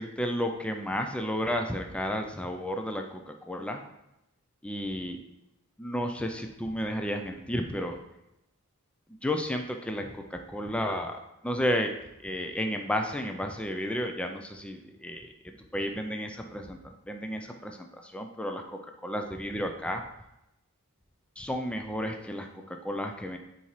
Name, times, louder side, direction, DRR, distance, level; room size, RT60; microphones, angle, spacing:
voice 1, 0.0-3.2 3.5-3.8 4.6-5.2 5.8-8.0 9.2-11.9 12.2-20.0 21.4-23.4, equal, 5° left, 4 dB, 0.4 m, -32 dB
9.5 x 4.1 x 3.1 m, 0.89 s
head